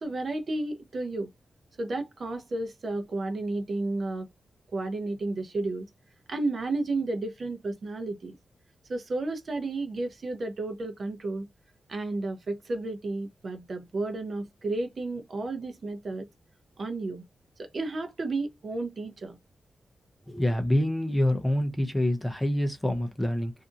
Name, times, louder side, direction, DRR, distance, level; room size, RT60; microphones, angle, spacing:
voice 1, 0.0-1.3 1.8-4.3 4.7-5.9 6.3-8.4 8.9-11.5 11.9-16.3 16.8-17.2 17.6-19.4, right 2 dB, 40° right, 0.6 m, -32 dB
voice 2, 20.3-23.5, left 1 dB, 10° left, 0.5 m, -26 dB
2.7 x 2.5 x 2.4 m
wide cardioid pair, 165°, 0 cm